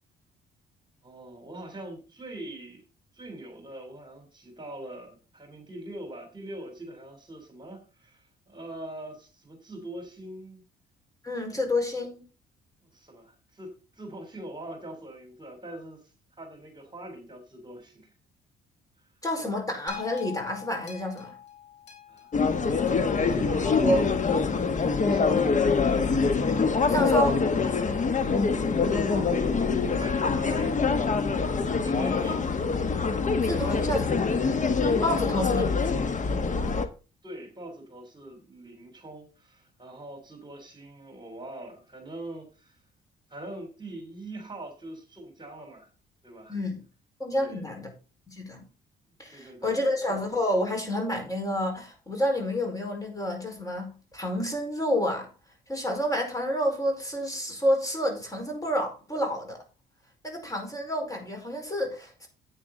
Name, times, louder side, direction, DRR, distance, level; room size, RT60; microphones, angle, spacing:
voice 1, 1.0-2.8 3.1-10.6 11.5-11.6 12.9-16.0 16.4-18.1 22.1-22.8 23.2-23.7 24.8-26.3 28.3-29.6 29.9-31.0 31.8-32.4 33.5-33.7 35.1-35.6 37.2-42.8 43.3-45.9 46.2-46.6 47.3-47.6 49.3-50.0, right 1 dB, 25° right, 3.4 m, -43 dB
voice 2, 11.2-12.2 19.2-21.4 23.6-24.4 26.8-27.4 31.9-32.4 33.4-34.2 35.0-35.8 46.5-46.8 47.2-47.9 48.3-48.6 49.2-55.3 55.7-59.6 60.2-62.3, equal, 20° left, 4.7 m, -29 dB
sound 1, 19.9-24.2 24.9-25.0, left 10 dB, 75° left, 4.6 m, -45 dB
sound 2, 22.3-36.9, left 4 dB, 40° left, 1.3 m, -25 dB
9.8 x 8.8 x 3.9 m
supercardioid pair, 75°, 19 cm